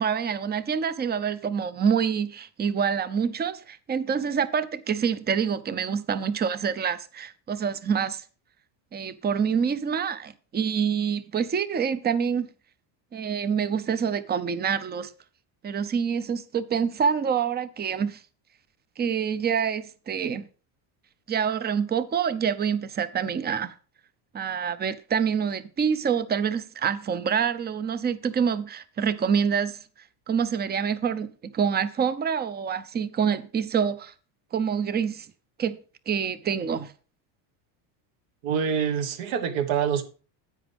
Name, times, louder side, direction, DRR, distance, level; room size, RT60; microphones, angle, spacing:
voice 1, 0.0-8.2 8.9-12.5 13.1-15.1 15.6-18.2 19.0-20.5 21.3-23.7 24.3-29.8 30.3-34.1 34.5-35.3 35.6-35.8 36.1-36.9, right 7 dB, 20° right, 0.6 m, -26 dB
voice 2, 38.4-40.0, right 7 dB, 65° right, 1.7 m, -26 dB
10.0 x 8.8 x 3.5 m
cardioid pair, 135°, 49 cm